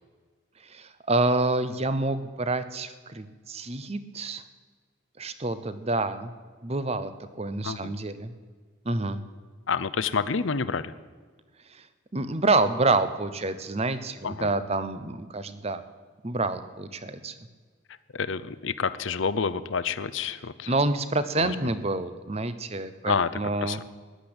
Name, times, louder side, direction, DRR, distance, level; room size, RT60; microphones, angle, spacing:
voice 1, 0.6-4.4 5.2-6.3 6.6-8.3 8.8-9.2 11.7-11.8 12.1-15.8 16.2-17.3 20.7-23.8, right 2 dB, 30° right, 13 dB, 0.8 m, -28 dB
voice 2, 7.6-7.9 9.7-10.9 14.2-14.5 18.1-20.7 21.4-21.5 23.1-23.3 23.6-23.8, left 5 dB, 70° left, 15 dB, 0.7 m, -28 dB
14.5 x 10.5 x 8.0 m, 1.5 s
head